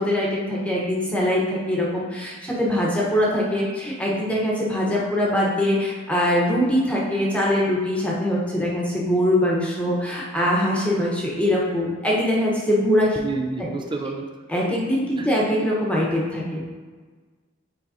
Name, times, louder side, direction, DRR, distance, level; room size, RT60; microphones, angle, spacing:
voice 1, 0.0-13.2 14.5-16.7, left 1 dB, 5° left, -5 dB, 1.0 m, -22 dB
voice 2, 13.2-14.3 15.2-15.3, right 3 dB, 25° right, 3 dB, 0.5 m, -29 dB
8.7 x 4.5 x 2.7 m, 1.4 s
head